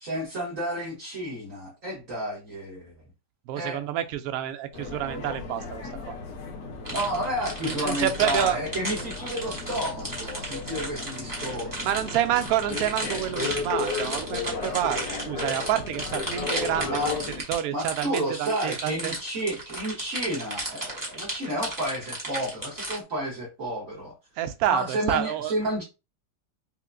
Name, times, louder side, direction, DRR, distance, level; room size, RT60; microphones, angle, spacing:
voice 1, 0.0-2.9 3.5-3.8 6.9-11.9 16.8-17.1 17.7-24.1 24.7-25.8, right 1 dB, 50° right, 1.5 m, -31 dB
voice 2, 3.5-6.2 7.6-8.6 11.8-17.1 17.5-19.1 24.4-25.5, right 11 dB, 70° right, 0.9 m, -28 dB
sound 1, 4.7-17.4, left 4 dB, 75° left, 1.5 m, -35 dB
sound 2, 6.9-23.0, right 1 dB, 15° right, 1.0 m, -34 dB
5.6 x 2.1 x 2.6 m
omnidirectional pair, 1.8 m